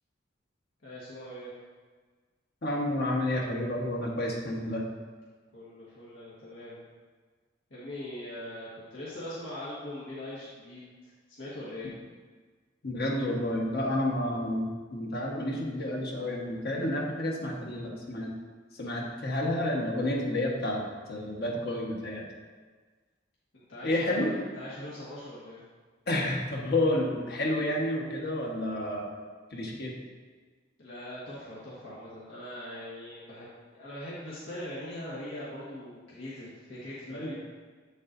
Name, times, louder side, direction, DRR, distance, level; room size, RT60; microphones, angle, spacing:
voice 1, 0.8-1.5 5.5-6.8 7.7-11.9 23.5-25.6 30.8-37.3, left 1 dB, 80° left, -8 dB, 1.5 m, -41 dB
voice 2, 2.6-4.8 12.8-18.3 18.7-22.3 23.8-24.3 26.1-29.1 29.5-29.9 37.1-37.3, left 1 dB, 55° left, -1 dB, 1.3 m, -30 dB
8.0 x 7.1 x 2.6 m, 1.4 s
head